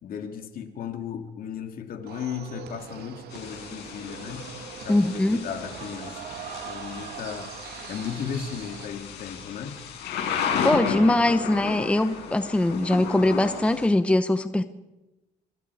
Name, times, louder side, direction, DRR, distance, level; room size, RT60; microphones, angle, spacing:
voice 1, 0.0-4.5 4.8-6.2 6.6-7.5 7.9-9.8, left 7 dB, 60° left, 5 dB, 2.6 m, -35 dB
sound 1, 2.1-8.9, right 9 dB, 75° right, 2.4 m, -41 dB
Thunder / Rain, 3.3-13.9, left 6 dB, 80° left, 6.7 m, -34 dB
voice 2, 4.9-5.4 10.6-14.7, left 1 dB, 5° left, 11 dB, 0.9 m, -22 dB
24.5 x 24.0 x 4.9 m, 1.0 s
cardioid pair, 110°, 17 cm